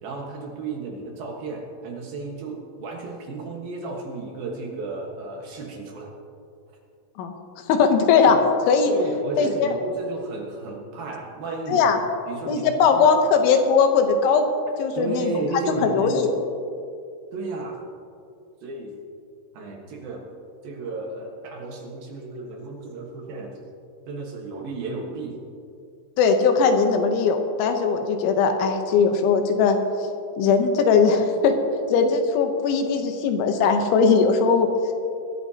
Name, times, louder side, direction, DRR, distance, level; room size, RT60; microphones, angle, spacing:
voice 1, 0.0-6.1 8.3-8.4 8.9-11.8 12.3-13.1 14.9-16.2 17.3-17.8 18.6-18.9 19.5-20.3 20.6-23.5 24.1-25.3, right 3 dB, 65° right, 0 dB, 2.7 m, -33 dB
voice 2, 7.7-8.4 8.7-8.9 9.4-9.7 11.7-12.0 12.4-14.5 14.8-15.3 15.8-16.3 26.2-29.8 30.4-31.5 31.9-34.7, left 5 dB, 80° left, 5 dB, 3.2 m, -19 dB
22.5 x 13.0 x 2.9 m, 2.5 s
omnidirectional pair, 5.5 m